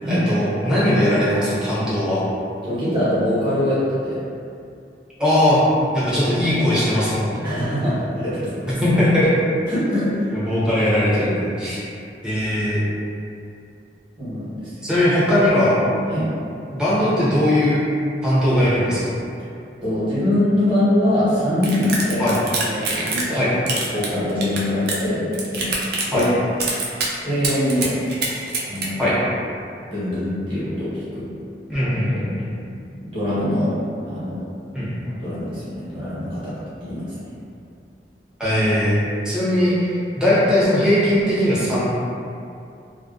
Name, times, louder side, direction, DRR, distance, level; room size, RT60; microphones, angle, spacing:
voice 1, 0.1-2.2 5.2-5.6 5.9-7.3 8.8-9.3 10.3-11.8 12.2-12.8 14.8-15.8 16.7-17.8 18.2-19.1 22.2-22.4 23.3-23.5 26.1-26.3 29.0-29.1 31.7-32.5 34.7-34.9 38.4-41.8, left 1 dB, 5° right, -11 dB, 0.6 m, -19 dB
voice 2, 2.6-4.2 6.2-6.4 7.4-8.7 9.7-10.3 14.2-14.9 16.1-16.3 19.8-22.3 22.6-23.4 23.9-25.2 25.5-25.7 26.1-26.3 27.2-27.9 28.7-29.0 29.9-31.3 31.8-31.9 33.0-33.7 34.1-34.5 35.2-36.5 36.8-37.2, left 1 dB, 30° right, -13 dB, 1.1 m, -23 dB
sound 1, 21.6-23.4 23.7-25.0 25.3-26.3 26.6-27.1 27.4-28.9, right 3 dB, 60° right, 0.4 m, -25 dB
2.4 x 2.1 x 2.3 m, 2.5 s
head